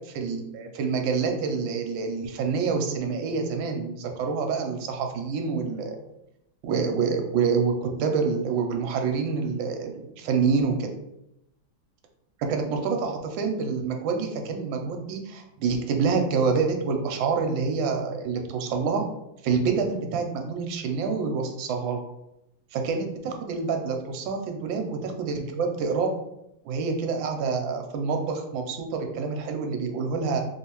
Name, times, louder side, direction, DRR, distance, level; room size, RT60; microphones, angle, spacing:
voice 1, 0.1-6.0 6.6-10.9 12.4-19.0 19.4-22.0 22.7-26.1 26.6-30.4, right 5 dB, 75° right, 4 dB, 1.3 m, -27 dB
3.4 x 2.7 x 2.9 m, 0.84 s
omnidirectional pair, 2.2 m